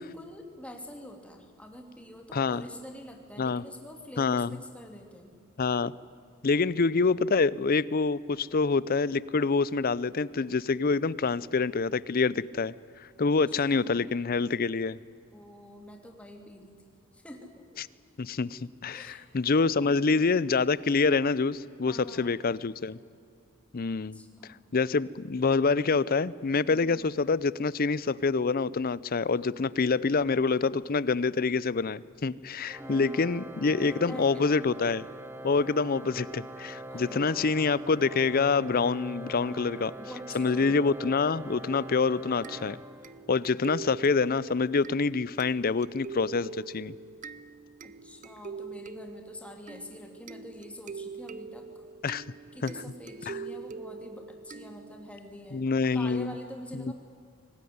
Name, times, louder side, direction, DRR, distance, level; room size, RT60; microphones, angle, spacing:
voice 1, 0.0-5.4 13.5-14.1 15.3-16.8 17.1-17.8 18.9-19.3 19.8-20.5 21.9-22.3 23.9-24.6 32.8-33.2 33.8-34.5 36.9-37.5 39.5-40.8 47.8-51.8 52.5-56.9, equal, 5° left, 3 dB, 2.7 m, -46 dB
voice 2, 2.3-2.6 3.4-3.6 4.2-4.6 5.6-5.9 6.4-12.7 13.2-15.0 17.8-17.9 18.2-23.0 23.7-24.2 24.7-35.1 35.4-39.9 40.3-42.8 43.3-46.9 52.0-52.2 52.6-52.7 53.3-53.4 55.5-56.3 56.7-56.9, left 4 dB, 45° left, 20 dB, 0.6 m, -26 dB
Organ, 32.7-43.5, right 1 dB, 10° right, 1.0 m, -43 dB
sound 1, 42.4-55.2, right 4 dB, 35° right, 0.7 m, -44 dB
25.0 x 19.0 x 9.5 m, 2.4 s
head